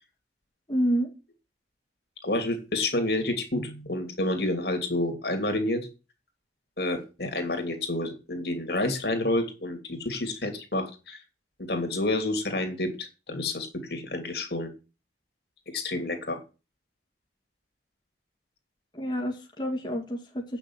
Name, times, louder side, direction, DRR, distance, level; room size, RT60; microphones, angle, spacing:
voice 1, 0.7-1.1 18.9-20.6, equal, 25° left, 0 dB, 2.1 m, -28 dB
voice 2, 2.2-5.9 6.8-11.2 11.6-14.7 15.7-16.4, left 2 dB, 60° left, 5 dB, 2.9 m, -29 dB
8.9 x 6.6 x 8.0 m, 0.31 s
head